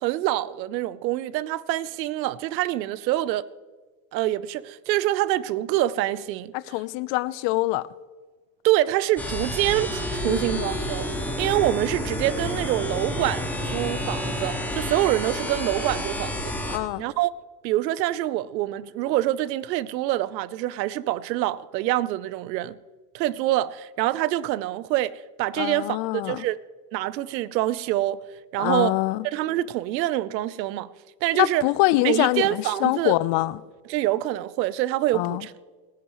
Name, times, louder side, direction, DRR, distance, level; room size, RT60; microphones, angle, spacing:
voice 1, 0.0-3.4 4.1-6.5 8.6-11.1 11.4-16.4 17.0-17.3 17.6-22.8 23.1-26.0 26.2-26.6 26.9-28.2 28.5-28.9 29.2-30.9 31.2-31.6 32.0-33.2 33.9-35.5, right 15 dB, 85° right, 0.8 m, -25 dB
voice 2, 6.5-7.9 10.3-10.8 16.7-17.0 25.6-26.4 28.6-29.2 31.4-33.6 35.1-35.5, left 18 dB, 60° left, 0.8 m, -24 dB
sound 1, 9.2-16.8, left 1 dB, 5° left, 3.7 m, -29 dB
28.0 x 10.5 x 3.1 m
hypercardioid pair, 85°, 50 cm